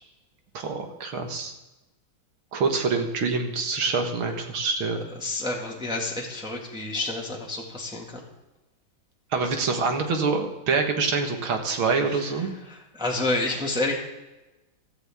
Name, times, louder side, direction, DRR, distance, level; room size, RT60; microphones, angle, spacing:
voice 1, 0.5-1.5 2.5-5.1 9.3-12.5, right 4 dB, 90° right, 4 dB, 2.4 m, -26 dB
voice 2, 5.2-8.2 12.1-12.3 12.7-13.9, left 2 dB, ahead, -2 dB, 1.8 m, -29 dB
16.0 x 13.5 x 3.6 m, 1.0 s
omnidirectional pair, 2.2 m